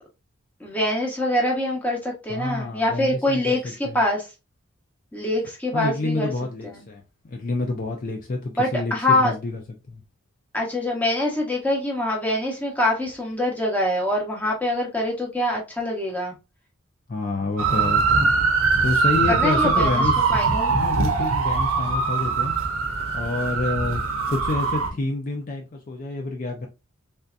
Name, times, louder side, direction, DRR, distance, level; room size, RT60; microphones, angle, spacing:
voice 1, 0.6-4.3 5.1-6.3 6.6-6.9 8.6-9.3 10.5-16.3 19.3-20.7, left 1 dB, 5° left, 0.9 m, -24 dB
voice 2, 2.3-4.0 5.7-9.6 9.9-10.0 17.1-18.1 18.8-20.3 20.7-22.5 23.1-24.0 24.3-26.7, left 2 dB, 40° left, 0.4 m, -28 dB
sound 1, 17.6-24.9, right 4 dB, 75° right, 0.7 m, -22 dB
3.4 x 2.7 x 2.4 m
head